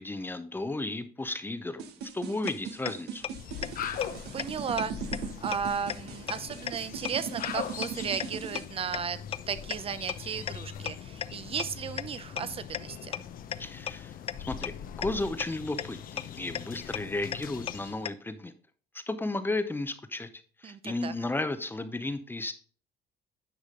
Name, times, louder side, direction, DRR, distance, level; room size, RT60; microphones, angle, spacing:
voice 1, 0.0-3.3 13.6-14.1 14.5-18.5 18.9-20.3 20.6-22.5, left 2 dB, 10° left, 11 dB, 0.7 m, -34 dB
sound 1, 1.8-8.6, right 7 dB, 75° right, 1.1 m, -39 dB
sound 2, 2.5-2.6 2.9-3.0 3.2-3.3 3.6-3.7 4.0-4.1 4.4-4.5 4.8-4.9 5.1-5.2 5.5-5.6 5.9-6.0 6.3-6.4 6.7-6.8 7.0-7.1 7.4-7.5 7.8-7.9 8.2-8.3 8.6-8.7 8.9-9.0 9.3-9.4 9.7-9.8 10.1-10.2 10.5-10.6 10.9-11.0 11.2-11.3 11.6-11.7 12.0-12.1 12.4-12.5 12.7-12.8 13.1-13.2 13.5-13.6 13.9-14.0 14.3-14.4 14.6-14.7 15.0-15.1 15.4-15.5 15.8-15.9 16.2-16.3 16.5-16.6 16.9-17.0 17.3-17.4 17.7-17.8 18.1-18.2, left 9 dB, 35° left, 0.4 m, -32 dB
sound 3, 3.2-18.1, left 9 dB, 55° left, 0.8 m, -41 dB
voice 2, 4.3-9.2 9.5-13.2 20.6-21.1, right 7 dB, 35° right, 14 dB, 0.7 m, -35 dB
9.9 x 5.1 x 3.8 m, 0.41 s
cardioid pair, 110°, 17 cm